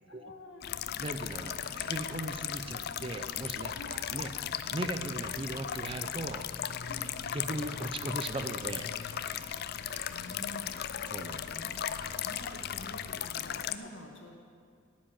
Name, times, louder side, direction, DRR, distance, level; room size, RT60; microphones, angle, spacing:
voice 1, 0.1-0.7 3.7-4.0 6.8-7.1 9.5-9.6 9.9-10.8 11.5-11.8 12.2-14.4, left 1 dB, 70° left, 2 dB, 1.6 m, -48 dB
sound 1, 0.6-13.8, left 9 dB, 55° left, 0.4 m, -37 dB
voice 2, 1.0-4.3 4.7-6.4 7.3-8.9 11.1-11.4, right 2 dB, 25° right, 8 dB, 0.5 m, -38 dB
sound 2, 1.6-13.5, right 1 dB, 55° right, 3.5 m, -55 dB
9.1 x 7.5 x 9.0 m, 2.3 s
head